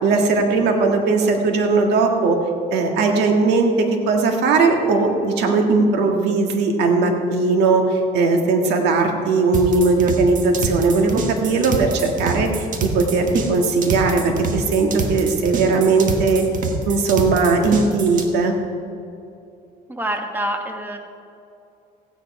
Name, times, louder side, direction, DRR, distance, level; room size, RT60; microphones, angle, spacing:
voice 1, 0.0-2.4 2.7-16.4 16.9-18.6, right 3 dB, 85° right, 3 dB, 1.8 m, -18 dB
sound 1, 9.5-18.3, right 4 dB, 50° right, 1.4 m, -27 dB
voice 2, 19.9-21.0, right 1 dB, 10° right, 4 dB, 1.5 m, -26 dB
15.5 x 9.5 x 4.8 m, 2.7 s
cardioid pair, 110°, 17 cm